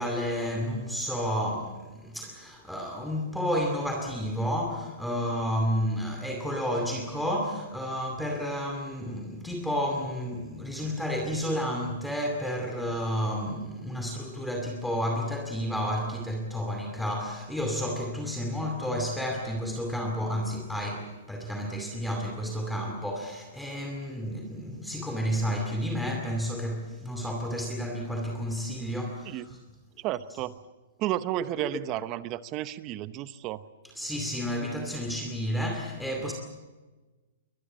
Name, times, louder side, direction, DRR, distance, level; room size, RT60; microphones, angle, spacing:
voice 1, 0.0-29.6 31.4-31.5 33.9-36.3, equal, ahead, 2 dB, 2.4 m, -31 dB
voice 2, 30.0-30.5 31.0-33.6, right 14 dB, 30° right, 15 dB, 0.8 m, -32 dB
23.0 x 20.5 x 7.5 m, 1.2 s
hypercardioid pair, 150°, 0 cm